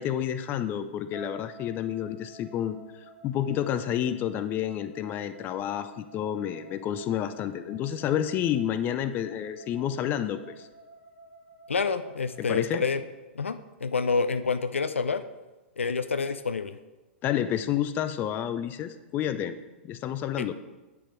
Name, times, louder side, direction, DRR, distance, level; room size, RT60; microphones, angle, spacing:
voice 1, 0.0-2.8 3.2-10.7 12.4-12.8 17.2-19.6 19.8-20.5, left 10 dB, 30° left, 10 dB, 0.5 m, -29 dB
sound 1, 1.1-13.3, right 1 dB, 50° right, 2.6 m, -51 dB
voice 2, 11.7-13.0 13.4-15.2 15.8-16.8 20.4-20.5, left 4 dB, 85° left, 11 dB, 0.4 m, -28 dB
8.5 x 5.2 x 4.6 m, 1.1 s
hypercardioid pair, 110°, 7 cm